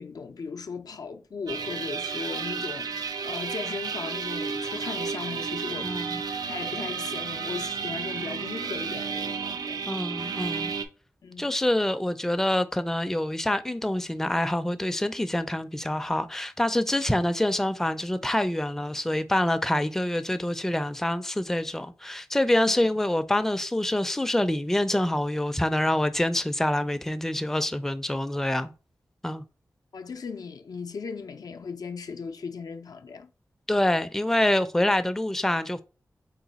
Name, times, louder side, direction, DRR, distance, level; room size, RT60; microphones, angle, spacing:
voice 1, 0.0-5.9 6.4-9.8 11.2-11.5 22.7-22.9 29.9-33.3, left 5 dB, 70° left, 0.4 m, -37 dB
sound 1, 1.5-10.9, right 5 dB, 75° right, 0.4 m, -32 dB
voice 2, 5.8-6.2 9.9-10.7 11.4-28.7 29.2-29.4 33.7-35.8, left 1 dB, 5° left, 0.4 m, -26 dB
4.0 x 2.1 x 4.0 m
cardioid pair, 50°, 7 cm